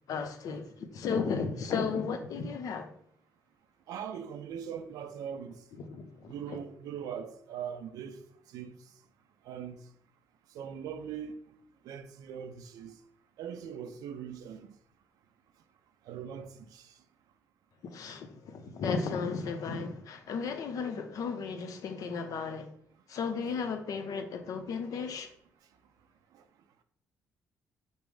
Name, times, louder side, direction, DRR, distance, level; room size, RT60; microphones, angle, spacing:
voice 1, 0.1-2.9 5.8-6.6 17.8-22.7 23.1-25.3, left 5 dB, 70° left, 0.6 m, -34 dB
voice 2, 3.9-5.6 6.3-8.2 8.5-8.7 9.5-9.8 10.5-11.4 11.8-12.9 13.4-14.7 16.1-16.8, right 8 dB, 85° right, 0.4 m, -40 dB
5.3 x 2.0 x 4.7 m
cardioid pair, 95°, 6 cm